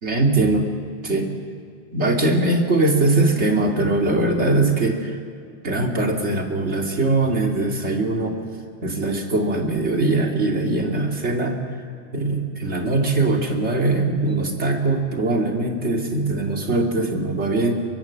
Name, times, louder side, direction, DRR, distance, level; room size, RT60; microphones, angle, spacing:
voice 1, 0.0-0.7 1.0-1.3 1.9-5.2 5.6-8.4 8.8-11.6 12.1-17.7, right 2 dB, 85° right, 1 dB, 3.0 m, -21 dB
23.0 x 23.0 x 7.5 m, 2.4 s
omnidirectional pair, 1.1 m